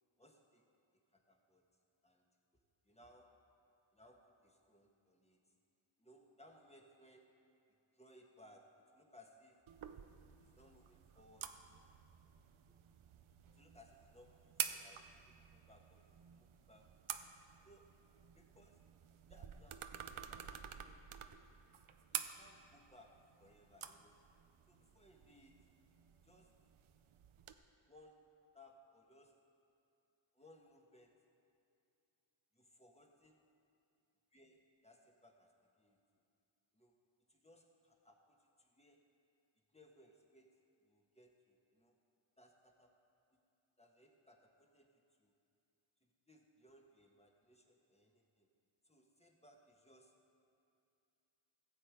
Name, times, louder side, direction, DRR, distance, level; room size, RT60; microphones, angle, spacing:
voice 1, 0.2-0.6 1.1-1.6 2.0-2.2 2.8-3.6 3.9-5.4 6.0-7.4 7.7-9.7 10.4-11.8 12.7-12.8 13.5-17.0 17.6-18.0 18.3-18.8 19.3-21.1 22.1-24.3 24.7-25.7 26.2-26.6 27.9-29.4 30.3-31.3 32.5-33.5 34.3-36.0 36.7-37.0 37.3-39.1 39.7-42.0 42.4-43.0 43.8-45.3 46.0-48.5 48.8-50.2, left 1 dB, 15° left, 1 dB, 1.4 m, -65 dB
sound 1, 9.7-27.5, right 9 dB, 80° right, 0.7 m, -50 dB
16.0 x 7.8 x 4.8 m, 2.6 s
wide cardioid pair, 60°, 48 cm